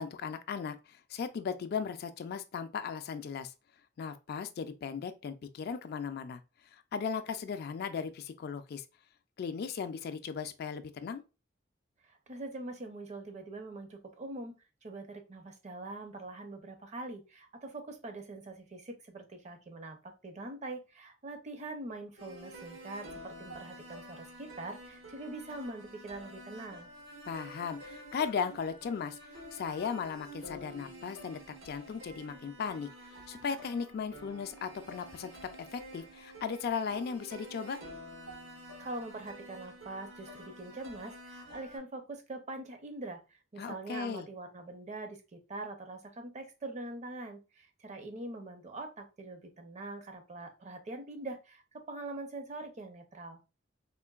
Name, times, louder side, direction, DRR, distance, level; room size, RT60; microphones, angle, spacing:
voice 1, 0.0-3.5 4.0-6.4 6.9-8.8 9.4-11.2 27.3-29.2 29.5-31.4 31.6-32.9 33.3-35.3 35.7-37.8 43.6-44.3, left 6 dB, 55° left, 0.3 m, -37 dB
voice 2, 12.1-14.5 14.8-26.9 38.8-43.2 43.5-53.4, right 2 dB, 35° right, 0.5 m, -43 dB
sound 1, 22.2-41.8, equal, 80° right, 1.0 m, -49 dB
3.7 x 2.5 x 2.3 m
head